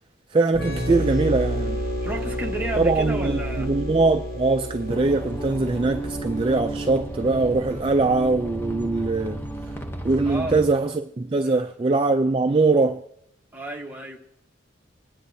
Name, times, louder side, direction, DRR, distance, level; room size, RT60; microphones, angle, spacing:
voice 1, 0.3-1.8 2.8-9.4 10.0-13.0, right 3 dB, 25° right, 0.3 m, -22 dB
sound 1, 0.5-8.1, equal, 80° left, 3.2 m, -31 dB
sound 2, 0.6-5.5, right 1 dB, 55° left, 2.3 m, -42 dB
voice 2, 2.0-3.7 9.7-9.8 10.2-10.6 11.4-11.5 13.5-14.2, right 1 dB, 10° right, 1.1 m, -32 dB
sound 3, 4.9-10.7, right 1 dB, 10° left, 0.7 m, -33 dB
25.0 x 9.7 x 2.7 m
head